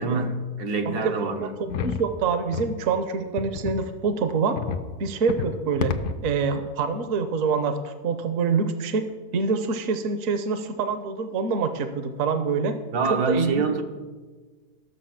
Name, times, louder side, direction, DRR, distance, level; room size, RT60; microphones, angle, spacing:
voice 1, 0.0-1.5 12.9-13.8, right 4 dB, 80° right, 4 dB, 1.5 m, -25 dB
voice 2, 1.4-4.6 5.0-5.9 6.2-9.1 9.3-12.8 13.1-13.8, right 5 dB, 65° right, 8 dB, 1.1 m, -26 dB
sound 1, 1.7-2.1 2.5-2.7 3.4-3.9 4.6-4.9 5.3-5.6 5.8-6.2, left 6 dB, 85° left, 1.2 m, -29 dB
13.5 x 6.8 x 5.8 m, 1.4 s
omnidirectional pair, 1.6 m